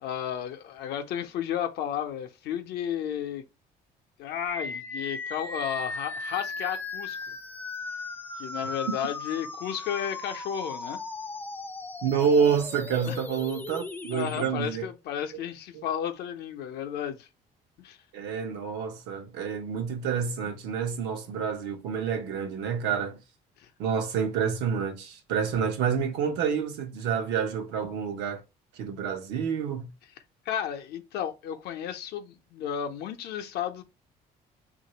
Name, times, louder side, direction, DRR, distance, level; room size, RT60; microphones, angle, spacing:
voice 1, 0.0-3.4 4.2-7.4 8.4-11.0 13.1-13.2 14.1-17.3 17.8-18.0 23.6-23.7 30.5-33.8, left 9 dB, 75° left, 0.6 m, -33 dB
sound 1, 4.5-14.5, left 3 dB, 10° left, 0.4 m, -37 dB
voice 2, 12.0-14.9 15.7-15.8 18.1-23.2 23.8-28.4 28.7-29.9, right 7 dB, 90° right, 0.8 m, -28 dB
3.2 x 2.5 x 2.8 m
cardioid pair, 110°, 17 cm